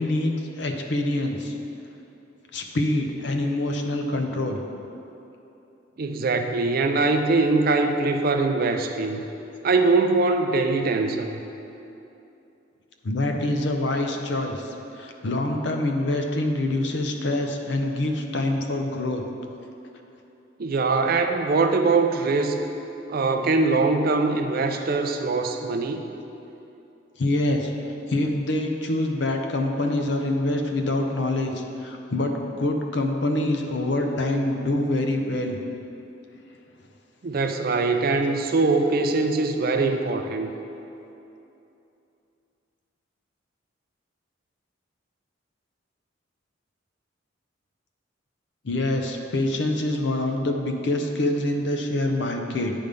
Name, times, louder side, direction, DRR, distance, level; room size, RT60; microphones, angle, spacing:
voice 1, 0.0-1.6 2.5-4.6 13.0-19.2 27.2-27.7 28.1-35.6 48.6-52.7, left 1 dB, 65° left, 4 dB, 0.6 m, -25 dB
voice 2, 6.0-9.2 9.6-11.4 20.6-22.6 23.1-26.0 37.2-40.5, right 3 dB, 50° right, 6 dB, 0.4 m, -22 dB
9.3 x 3.5 x 5.2 m, 2.9 s
head